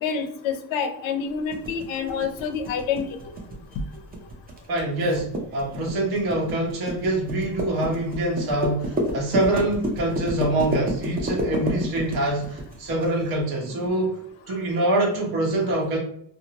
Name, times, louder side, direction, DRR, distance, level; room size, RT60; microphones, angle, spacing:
voice 1, 0.0-3.1, left 6 dB, 85° left, 8 dB, 0.6 m, -27 dB
sound 1, 1.5-13.1, right 1 dB, 20° right, 0.5 m, -30 dB
voice 2, 4.7-14.2 14.5-16.0, right 1 dB, 55° right, -2 dB, 1.1 m, -25 dB
2.7 x 2.0 x 2.8 m, 0.69 s
cardioid pair, 120°, 45 cm